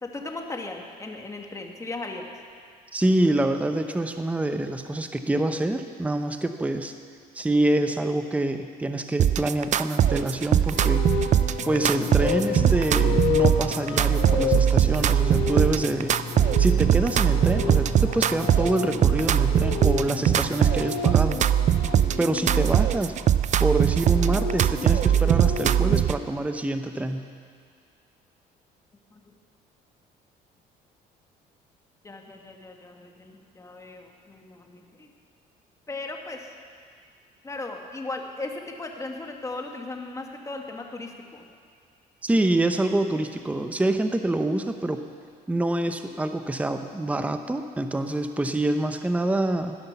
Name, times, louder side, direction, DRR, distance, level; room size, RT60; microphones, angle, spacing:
voice 1, 0.0-2.3 29.1-29.3 32.0-35.1 35.9-36.5 37.4-41.4, left 2 dB, 20° left, 2 dB, 1.9 m, -37 dB
voice 2, 2.9-6.9 7.3-11.1 11.7-16.1 16.6-21.4 22.2-23.1 23.6-27.3 42.2-45.0 45.5-49.8, right 1 dB, 10° right, 7 dB, 0.8 m, -26 dB
sound 1, 9.2-26.2, right 10 dB, 45° right, 0.5 m, -21 dB
sound 2, 10.7-22.7 23.8-26.0, left 7 dB, 80° left, 1.8 m, -32 dB
sound 3, 11.6-21.0, left 5 dB, 45° left, 1.5 m, -37 dB
17.0 x 10.0 x 6.9 m, 2.1 s
cardioid pair, 110°, 17 cm